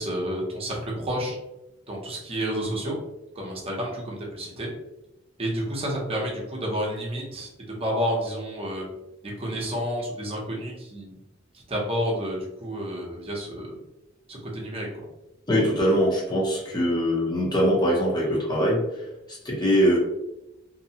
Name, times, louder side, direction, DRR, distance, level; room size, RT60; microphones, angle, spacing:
voice 1, 0.0-1.4 1.9-3.0 3.3-4.7 5.4-7.5 7.8-8.8 9.2-11.2 11.7-13.7 14.3-14.9, equal, 30° right, -3 dB, 0.8 m, -30 dB
voice 2, 15.5-20.0, equal, 20° left, -3 dB, 0.8 m, -23 dB
2.7 x 2.2 x 2.7 m, 0.92 s
head